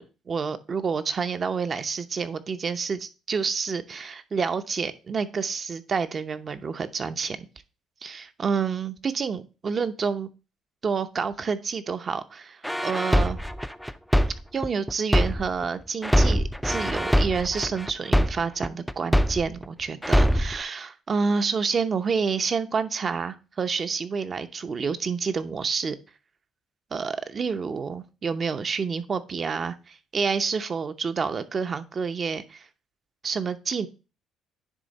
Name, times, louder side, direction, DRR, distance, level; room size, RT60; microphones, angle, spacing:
voice 1, 0.0-7.4 8.0-10.3 10.8-13.4 14.5-26.0 26.9-32.7 33.2-33.9, right 5 dB, 40° right, 11 dB, 0.7 m, -28 dB
sound 1, 12.6-15.6 16.0-19.6 20.0-20.6, equal, ahead, 0.4 m, -23 dB
9.9 x 3.5 x 4.0 m, 0.31 s
supercardioid pair, 85°, 0 cm